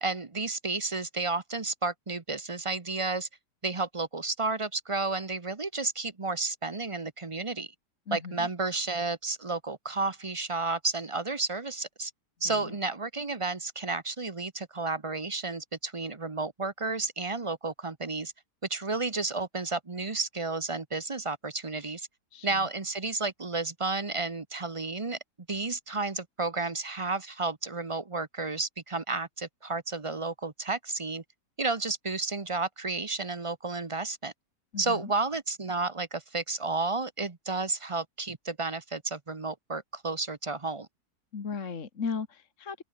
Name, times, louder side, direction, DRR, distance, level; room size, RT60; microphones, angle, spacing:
voice 1, 0.0-3.3 3.6-7.7 8.1-12.1 12.4-18.3 18.7-22.1 22.4-25.2 25.5-31.2 31.6-34.3 34.8-40.9, right 3 dB, 25° right, 0.9 m, -32 dB
voice 2, 8.1-8.5 12.5-12.8 22.3-22.7 34.7-35.1 41.3-42.8, left 5 dB, 50° left, 2.0 m, -36 dB
open air
omnidirectional pair, 1.8 m